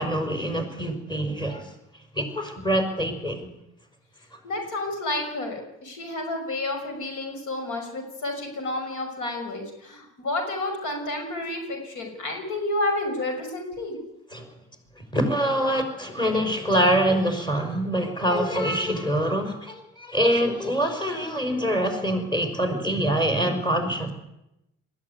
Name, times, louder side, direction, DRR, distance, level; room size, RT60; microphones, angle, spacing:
voice 1, 0.0-1.7 2.1-3.5 14.3-14.5 15.1-24.1, equal, 15° left, 6 dB, 5.4 m, -25 dB
voice 2, 4.4-14.0, left 2 dB, 85° left, 5 dB, 6.2 m, -30 dB
21.0 x 15.5 x 9.7 m, 0.86 s
cardioid pair, 90°, 30 cm